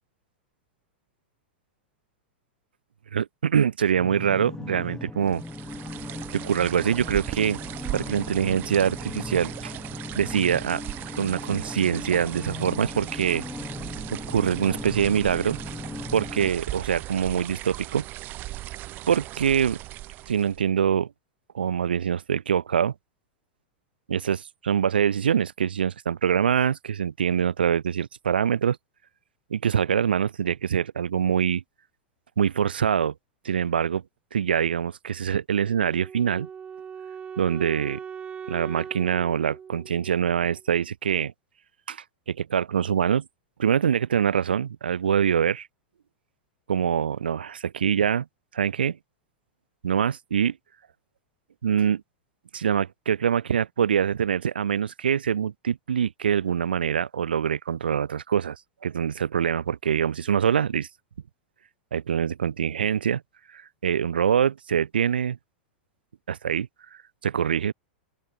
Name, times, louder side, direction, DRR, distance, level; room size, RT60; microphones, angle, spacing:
voice 1, 3.1-5.4 6.3-7.6 7.9-9.7 10.2-10.8 11.2-13.4 14.1-15.6 16.1-18.1 19.1-19.8 20.3-21.1 21.5-22.9 24.1-28.8 29.5-31.6 32.4-33.1 33.4-34.0 34.3-36.5 37.4-38.0 38.5-41.3 41.9-43.2 43.6-45.7 46.7-48.3 48.5-49.0 49.8-50.6 51.6-52.0 52.5-58.6 58.8-60.9 61.9-63.2 63.5-65.4 66.3-66.7 67.2-67.7, right 8 dB, 85° right, 0.7 m, -24 dB
sound 1, 3.9-16.5, left 3 dB, 10° left, 2.9 m, -38 dB
sound 2, 5.3-20.7, right 16 dB, 40° right, 0.6 m, -38 dB
Wind instrument woodwind instrument, 35.6-40.7, right 7 dB, 20° right, 2.8 m, -40 dB
open air
hypercardioid pair, 105°, 5 cm